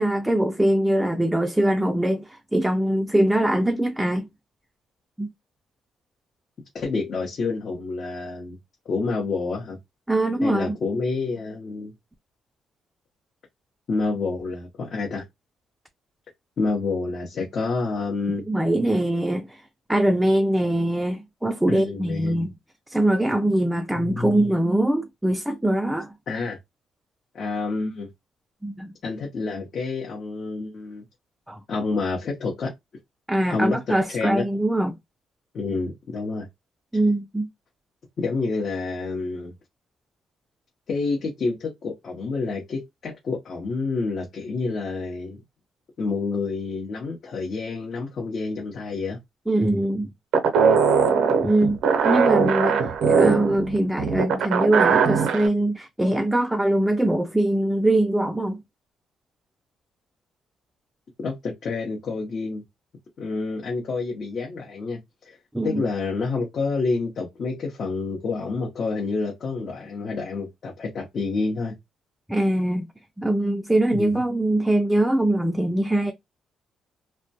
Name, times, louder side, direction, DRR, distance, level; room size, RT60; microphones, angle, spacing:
voice 1, 0.0-4.3 5.2-5.3 10.1-10.8 18.5-19.6 19.9-22.5 22.9-26.1 28.6-28.9 31.5-31.6 33.3-35.0 36.9-37.5 49.5-50.1 51.4-58.6 65.5-65.8 72.3-72.9 73.2-76.1, right 1 dB, 5° right, 0.3 m, -22 dB
voice 2, 6.7-8.6 8.9-9.8 10.4-11.9 13.9-15.2 16.6-18.4 21.7-22.5 23.9-24.4 26.3-26.6 27.3-28.1 29.0-31.0 31.7-32.7 33.5-34.4 35.5-36.5 38.2-39.5 40.9-45.4 46.0-49.2 61.2-62.6 63.2-65.0 65.2-65.4 65.6-71.7 73.9-74.1, left 3 dB, 55° left, 0.7 m, -28 dB
sound 1, 50.3-55.5, right 6 dB, 85° right, 0.5 m, -20 dB
2.2 x 2.1 x 2.7 m
cardioid pair, 90°, 0 cm